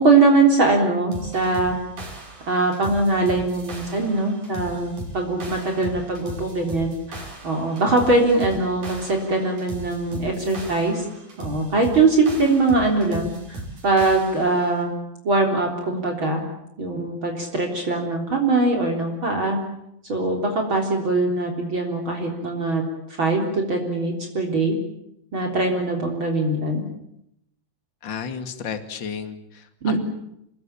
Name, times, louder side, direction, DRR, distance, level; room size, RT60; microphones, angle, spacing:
voice 1, 0.0-1.8 2.5-11.0 11.4-14.9 15.2-16.4 16.8-19.6 20.1-22.8 23.2-24.8 25.3-26.8 29.8-30.0, right 3 dB, 40° right, 1 dB, 4.4 m, -22 dB
sound 1, 1.1-14.7, right 2 dB, 90° right, 7.2 m, -37 dB
voice 2, 28.0-30.0, left 6 dB, 40° left, 8 dB, 2.8 m, -32 dB
28.5 x 20.5 x 8.9 m, 0.80 s
omnidirectional pair, 3.5 m